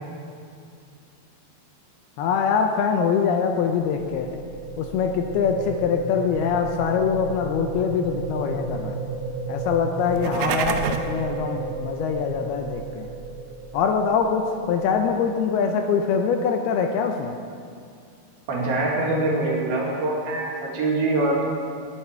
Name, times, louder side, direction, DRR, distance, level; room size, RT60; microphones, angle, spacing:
voice 1, 2.2-4.4 4.8-9.0 9.5-13.1 13.7-17.4, left 6 dB, 80° left, 4 dB, 2.6 m, -23 dB
sound 1, 3.2-15.3, right 4 dB, 35° right, 2.6 m, -34 dB
sound 2, 10.0-11.2, right 8 dB, 85° right, 2.7 m, -27 dB
voice 2, 18.5-21.4, right 2 dB, 65° right, -3 dB, 4.2 m, -24 dB
19.5 x 10.5 x 4.5 m, 2.4 s
omnidirectional pair, 4.6 m